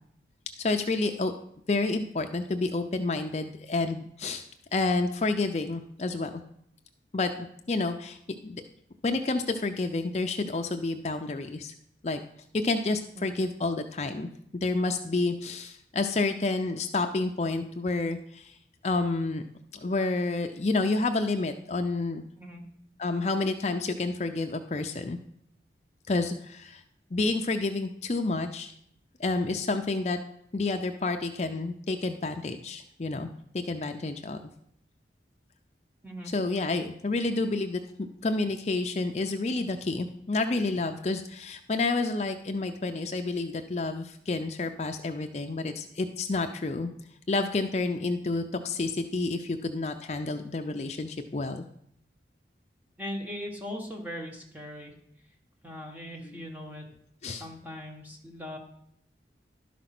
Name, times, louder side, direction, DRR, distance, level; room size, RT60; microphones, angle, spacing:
voice 1, 0.6-1.3 1.7-4.5 4.7-6.3 7.1-8.2 8.4-8.6 9.0-11.7 12.0-12.2 12.5-14.3 14.5-18.6 18.8-19.4 19.8-22.2 23.0-25.2 26.1-26.8 27.1-28.7 29.2-30.2 30.5-33.3 33.5-34.5 36.3-37.8 38.2-46.9 47.3-51.6 56.2-56.3 57.2-57.4, left 3 dB, 40° left, 5 dB, 0.5 m, -29 dB
voice 2, 53.0-54.9 55.6-56.9 57.3-58.6, equal, 10° right, 1 dB, 1.4 m, -39 dB
11.5 x 5.1 x 5.9 m, 0.72 s
head